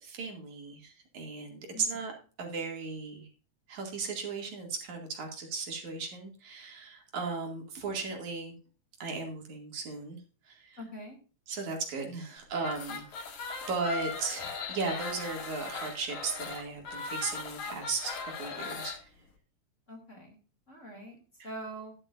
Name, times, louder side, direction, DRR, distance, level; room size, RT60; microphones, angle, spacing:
voice 1, 0.1-2.1 2.4-3.3 3.7-8.6 9.0-10.2 10.5-10.8 11.5-13.1 13.7-19.0, right 4 dB, 75° right, 2 dB, 3.8 m, -36 dB
voice 2, 1.7-2.0 10.8-11.2 19.9-20.4 20.7-21.9, right 1 dB, 25° left, 2 dB, 2.7 m, -44 dB
sound 1, 12.6-19.0, left 4 dB, 75° left, 3.5 m, -39 dB
11.5 x 11.5 x 2.6 m, 0.36 s
omnidirectional pair, 3.4 m